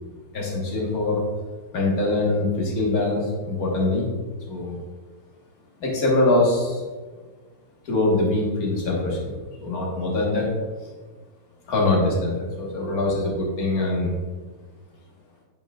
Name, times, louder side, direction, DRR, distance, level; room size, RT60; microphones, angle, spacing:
voice 1, 0.3-1.3 1.7-4.1 4.5-4.8 5.8-6.8 7.8-10.5 11.7-14.1, left 2 dB, 45° left, -3 dB, 1.6 m, -23 dB
8.5 x 4.7 x 2.4 m, 1.4 s
omnidirectional pair, 2.4 m